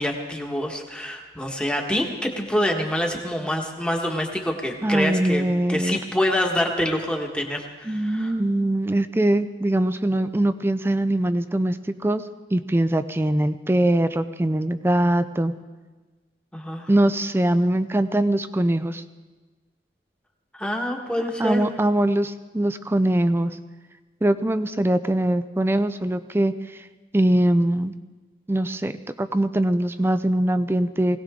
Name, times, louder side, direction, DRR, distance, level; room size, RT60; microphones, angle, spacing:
voice 1, 0.0-8.3 16.5-16.9 20.5-21.6, left 1 dB, 5° left, 2 dB, 1.5 m, -26 dB
voice 2, 4.8-6.0 7.9-12.2 12.5-15.5 16.9-19.0 21.4-23.5 24.2-26.8 27.1-27.9 28.5-31.2, right 1 dB, 15° right, 11 dB, 0.4 m, -22 dB
20.5 x 17.5 x 3.7 m, 1.3 s
head